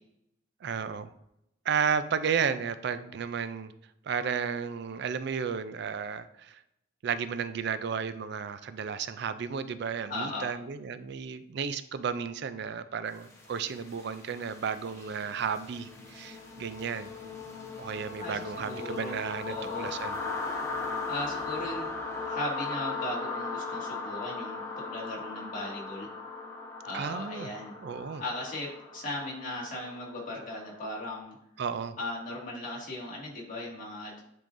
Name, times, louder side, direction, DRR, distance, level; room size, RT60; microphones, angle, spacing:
voice 1, 0.6-1.1 1.6-3.7 4.1-6.6 7.0-17.1 17.8-20.2 26.9-27.5 27.8-28.2 31.6-32.0, right 6 dB, 60° right, 12 dB, 0.4 m, -33 dB
voice 2, 10.1-10.5 18.2-19.1 19.5-19.9 21.1-21.9 22.2-26.1 26.8-27.7 28.2-31.4 32.0-34.2, left 1 dB, 45° left, -3 dB, 2.0 m, -37 dB
sound 1, 13.2-31.0, left 4 dB, 15° left, 0.9 m, -38 dB
10.0 x 3.8 x 2.6 m, 0.80 s
head